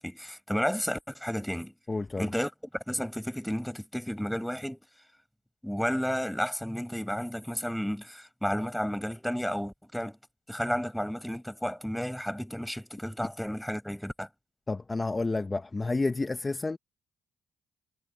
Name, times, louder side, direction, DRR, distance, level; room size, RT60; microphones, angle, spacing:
voice 1, 0.0-1.7 2.2-4.8 5.6-10.2 10.5-14.3, equal, ahead, 6.4 m, -32 dB
voice 2, 1.9-2.3 14.7-16.8, left 3 dB, 20° left, 0.8 m, -30 dB
cardioid pair, 90°, 0 cm